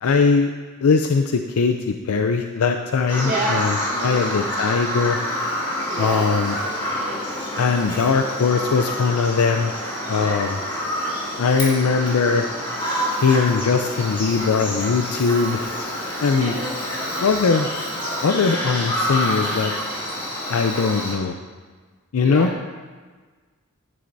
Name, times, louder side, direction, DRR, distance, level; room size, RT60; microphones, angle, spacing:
voice 1, 0.0-0.5 0.8-5.2 6.0-6.5 7.6-9.7 10.1-10.6 11.4-12.4 13.2-15.8 16.2-16.5 17.2-17.7 18.2-19.7 20.5-21.4 22.1-22.5, left 5 dB, 70° left, 5 dB, 0.5 m, -20 dB
Bird vocalization bird call bird song, 3.1-21.1, equal, 25° left, 2.3 m, -27 dB
voice 2, 3.1-3.6 3.9-4.2 5.9-6.3 16.3-17.2 22.2-22.5, right 2 dB, 35° right, -6 dB, 1.9 m, -29 dB
11.0 x 9.9 x 2.7 m, 1.4 s
head